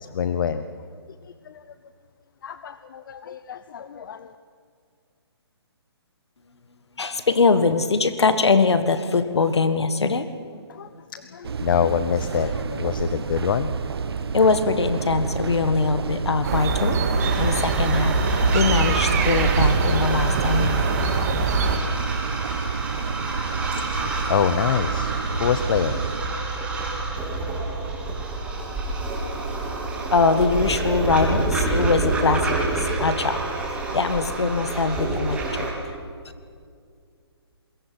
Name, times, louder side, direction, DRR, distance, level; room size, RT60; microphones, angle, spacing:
voice 1, 0.1-0.6 1.4-1.6 2.4-4.3 10.7-13.7 23.7-25.1 25.4-26.0, left 8 dB, 50° left, 12 dB, 0.9 m, -26 dB
voice 2, 7.0-10.3 14.3-20.8 30.1-33.4 33.9-35.9, left 4 dB, 80° left, 10 dB, 1.6 m, -22 dB
sound 1, 11.4-26.2, right 6 dB, 65° right, 1.2 m, -30 dB
sound 2, 16.4-21.8, right 4 dB, 40° right, 2.3 m, -23 dB
sound 3, 17.2-35.7, right 3 dB, 10° right, 3.5 m, -28 dB
26.0 x 21.5 x 6.1 m, 2.2 s
hypercardioid pair, 150°, 14 cm